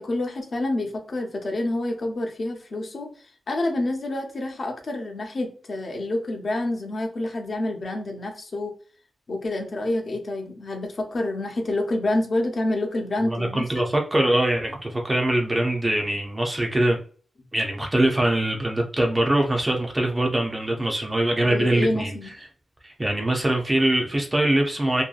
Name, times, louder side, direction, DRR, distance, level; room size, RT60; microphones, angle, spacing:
voice 1, 0.0-3.1 3.5-8.7 9.3-13.9 21.4-22.3, left 2 dB, 45° left, 0.5 m, -28 dB
voice 2, 13.2-17.0 17.5-22.1 22.8-25.0, right 1 dB, 20° right, 0.4 m, -23 dB
2.6 x 2.2 x 2.3 m
wide cardioid pair, 170°, 0 cm